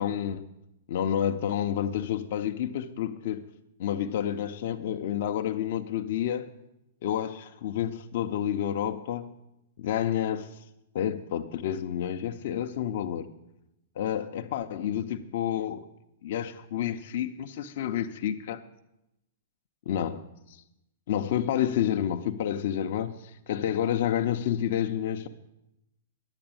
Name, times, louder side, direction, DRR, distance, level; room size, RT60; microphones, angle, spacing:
voice 1, 0.0-0.5 0.9-3.5 3.8-6.5 7.0-9.3 9.8-10.6 10.9-13.3 14.0-15.9 16.2-18.6 19.9-20.2 20.5-20.6 21.1-25.3, left 10 dB, 60° left, 0.7 m, -29 dB
9.9 x 6.9 x 8.9 m
hypercardioid pair, 150°, 0 cm